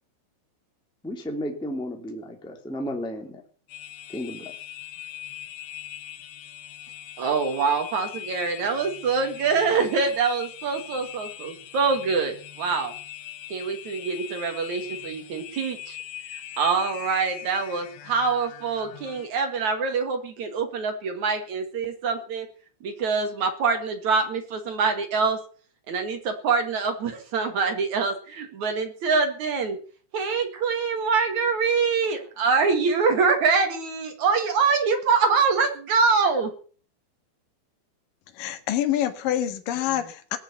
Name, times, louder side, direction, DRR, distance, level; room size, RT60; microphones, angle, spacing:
voice 1, 1.0-3.4 4.1-4.5, equal, ahead, 2 dB, 1.7 m, -33 dB
sound 1, 3.7-19.3, left 12 dB, 85° left, 4.1 m, -41 dB
voice 2, 7.2-12.9 13.5-16.0 16.3-22.5 22.8-25.4 25.9-29.8 30.1-36.5, right 5 dB, 50° right, 6 dB, 2.8 m, -25 dB
voice 3, 38.3-40.4, left 11 dB, 60° left, 8 dB, 2.8 m, -26 dB
20.0 x 7.2 x 8.2 m, 0.43 s
omnidirectional pair, 5.3 m